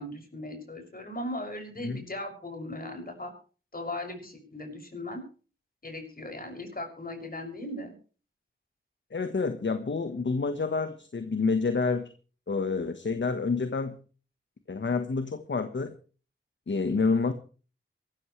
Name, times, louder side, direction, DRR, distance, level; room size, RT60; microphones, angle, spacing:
voice 1, 0.0-3.3 3.7-5.2 5.8-7.9, left 1 dB, 45° left, 3 dB, 6.9 m, -38 dB
voice 2, 9.1-12.1 12.5-14.0 14.7-15.9 16.7-17.3, left 4 dB, 60° left, 9 dB, 1.4 m, -28 dB
24.0 x 13.5 x 3.3 m, 0.39 s
wide cardioid pair, 90°, 21 cm